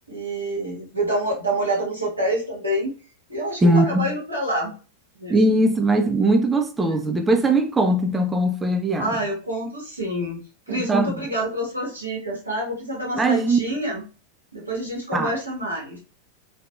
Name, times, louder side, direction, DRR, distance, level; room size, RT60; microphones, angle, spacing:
voice 1, 0.1-2.9 3.3-4.7 5.2-5.3 6.9-7.2 9.0-10.4 10.7-14.0 14.5-16.0, right 1 dB, 85° right, 1.5 m, -27 dB
voice 2, 3.6-4.1 5.3-9.2 10.7-11.1 13.2-13.6 15.1-15.3, right 2 dB, 15° right, 0.3 m, -20 dB
3.2 x 2.8 x 2.4 m
figure-of-eight pair, 90°, 0 cm